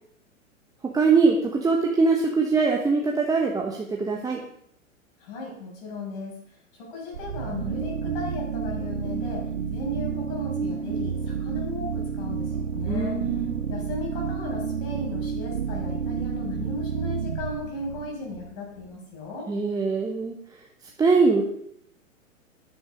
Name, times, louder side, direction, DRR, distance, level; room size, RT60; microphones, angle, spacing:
voice 1, 0.8-4.4 12.9-13.7 19.5-20.4 21.0-21.4, right 4 dB, 10° right, 0 dB, 1.1 m, -22 dB
voice 2, 5.2-6.4 6.7-13.3 13.7-19.5, left 2 dB, 40° left, -1 dB, 6.2 m, -36 dB
sound 1, 7.1-18.9, right 6 dB, 60° right, 1.3 m, -30 dB
13.0 x 10.5 x 5.1 m, 0.70 s
figure-of-eight pair, 110°, 41 cm